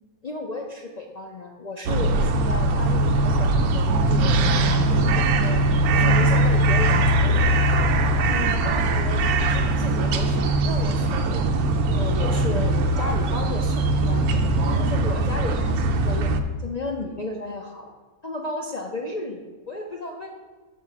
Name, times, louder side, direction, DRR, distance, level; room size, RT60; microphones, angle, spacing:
voice 1, 0.2-3.9 4.2-7.7 8.1-9.2 9.5-11.4 11.9-14.4 14.7-16.3 16.6-17.9 18.2-20.3, left 2 dB, 55° left, 1 dB, 0.4 m, -34 dB
sound 1, 1.9-16.4, right 2 dB, 90° right, 1.1 m, -21 dB
6.0 x 5.8 x 5.7 m, 1.3 s
omnidirectional pair, 1.5 m